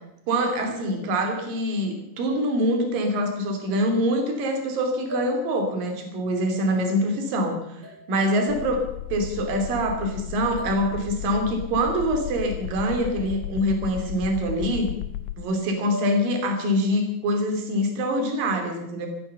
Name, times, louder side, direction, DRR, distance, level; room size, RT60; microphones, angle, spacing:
voice 1, 0.3-7.6 8.1-8.8 9.1-14.9 15.4-19.1, equal, 50° right, 4 dB, 4.0 m, -24 dB
sound 1, 5.1-6.2 7.8-8.9 10.6-11.7 13.2-14.1 15.9-16.9, left 2 dB, 25° right, 4.7 m, -43 dB
sound 2, 8.5-15.4, left 15 dB, 80° left, 3.2 m, -35 dB
14.5 x 14.0 x 7.0 m, 0.80 s
omnidirectional pair, 5.7 m